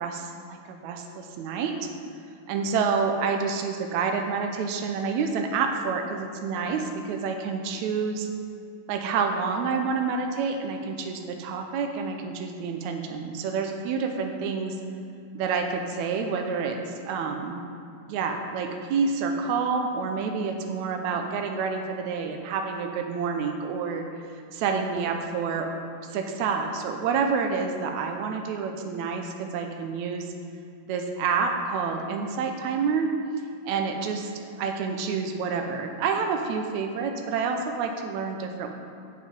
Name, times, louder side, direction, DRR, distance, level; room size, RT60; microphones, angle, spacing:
voice 1, 0.0-1.8 2.5-8.3 8.9-14.8 15.3-17.6 18.1-24.1 24.5-25.7 26.1-30.3 30.9-33.1 33.6-38.7, right 5 dB, 85° right, 4 dB, 2.0 m, -28 dB
7.7 x 7.6 x 5.3 m, 2.5 s
omnidirectional pair, 3.3 m